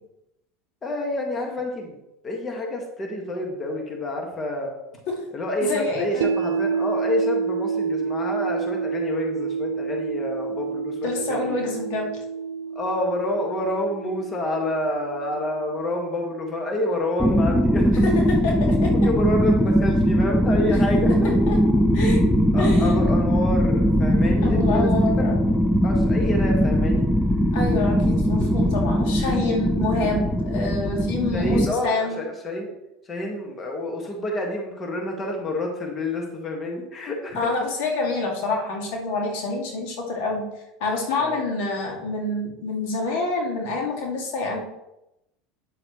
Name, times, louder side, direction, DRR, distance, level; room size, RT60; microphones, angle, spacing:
voice 1, 0.8-2.0 2.2-4.7 5.3-11.7 12.8-18.1 18.9-21.3 22.5-24.9 25.2-25.3 25.8-27.0 31.3-32.7 33.1-37.6 41.2-41.4, left 1 dB, 30° left, 1 dB, 1.7 m, -28 dB
voice 2, 5.6-6.3 11.0-12.1 18.0-18.1 18.4-18.5 18.8-18.9 21.5-21.6 21.9-22.2 22.6-23.0 24.4-25.4 27.5-32.2 37.4-40.5 40.8-44.6, left 3 dB, 65° left, 0 dB, 2.2 m, -27 dB
sound 1, 6.2-18.3, right 6 dB, 85° right, 0.4 m, -30 dB
sound 2, 17.2-31.6, equal, 5° left, 0.7 m, -20 dB
8.8 x 7.7 x 3.1 m, 0.89 s
hypercardioid pair, 85°, 0 cm